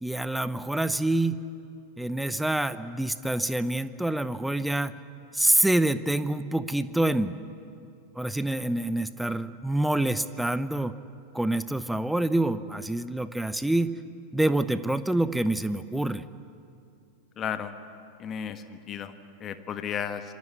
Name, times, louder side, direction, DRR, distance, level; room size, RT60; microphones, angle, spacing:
voice 1, 0.0-1.4 2.0-4.9 5.3-7.3 8.2-10.9 11.3-13.9 14.3-16.2, right 1 dB, 5° right, 14 dB, 0.8 m, -26 dB
voice 2, 17.4-17.7 18.2-19.1 19.4-20.2, left 8 dB, 30° left, 10 dB, 1.4 m, -33 dB
26.5 x 22.0 x 8.4 m, 2.5 s
figure-of-eight pair, 90°, 0 cm